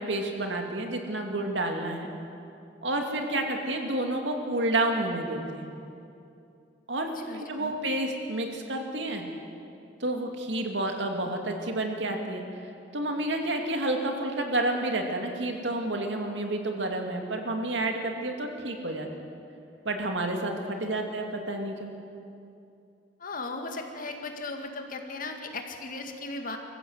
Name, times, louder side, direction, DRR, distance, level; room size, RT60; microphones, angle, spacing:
voice 1, 0.0-2.1 2.8-5.7 6.9-9.3 10.0-12.6 12.9-19.1 19.8-21.9, right 1 dB, 75° right, 3 dB, 2.5 m, -30 dB
voice 2, 7.2-7.7 23.2-26.6, left 3 dB, 50° left, 4 dB, 2.0 m, -37 dB
25.0 x 15.0 x 8.0 m, 2.6 s
head